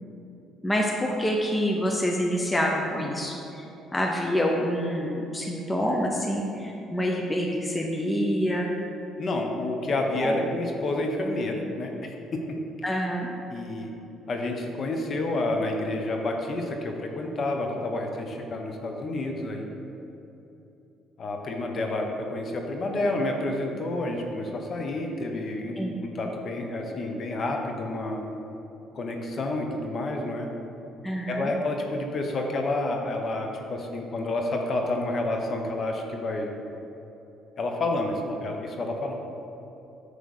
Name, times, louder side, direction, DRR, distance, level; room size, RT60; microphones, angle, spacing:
voice 1, 0.6-3.6 3.9-8.7 10.2-10.4 12.8-13.3 25.8-26.0 31.0-31.5, equal, 10° left, 0 dB, 0.7 m, -27 dB
voice 2, 9.2-12.4 13.5-13.9 14.3-19.6 21.2-28.2 28.9-30.5 31.3-36.5 37.6-39.1, left 2 dB, 40° left, 2 dB, 1.0 m, -29 dB
9.3 x 3.4 x 6.6 m, 3.0 s
cardioid pair, 120°, 0 cm